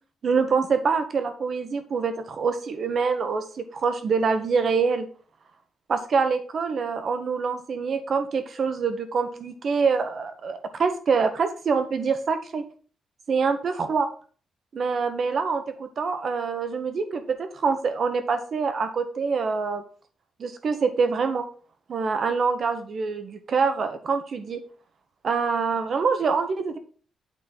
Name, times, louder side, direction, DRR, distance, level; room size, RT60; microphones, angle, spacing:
voice 1, 0.2-5.1 5.9-12.6 13.3-14.1 14.7-19.8 20.4-21.5 21.9-24.6 25.2-26.8, right 5 dB, 40° right, 9 dB, 0.9 m, -25 dB
8.3 x 3.8 x 5.4 m, 0.42 s
wide cardioid pair, 175°, 0 cm